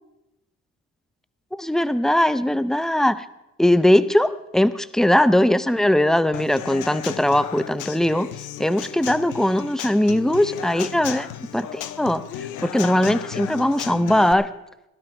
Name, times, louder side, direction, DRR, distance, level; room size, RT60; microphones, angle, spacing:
voice 1, 1.5-3.2 3.6-8.3 8.6-11.3 11.5-12.2 12.6-14.5, left 1 dB, ahead, 14 dB, 0.7 m, -20 dB
Human voice / Acoustic guitar / Drum, 6.3-14.3, left 11 dB, 85° left, 0.8 m, -34 dB
17.5 x 12.0 x 4.5 m, 0.89 s
cardioid pair, 90°, 30 cm